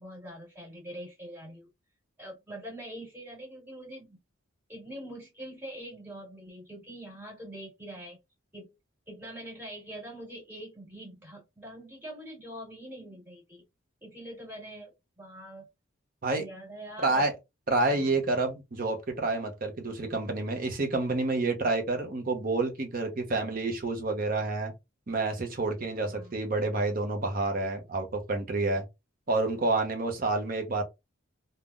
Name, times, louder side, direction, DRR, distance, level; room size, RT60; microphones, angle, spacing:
voice 1, 0.0-1.7 2.2-4.2 4.7-8.2 8.5-8.7 9.1-13.6 14.0-15.7 16.4-17.3 17.9-18.2 26.1-26.4, right 1 dB, 10° right, 1.8 m, -44 dB
voice 2, 17.0-17.3 17.7-24.7 25.1-28.8 29.3-30.8, right 2 dB, 40° right, 0.6 m, -29 dB
3.5 x 2.1 x 2.4 m
head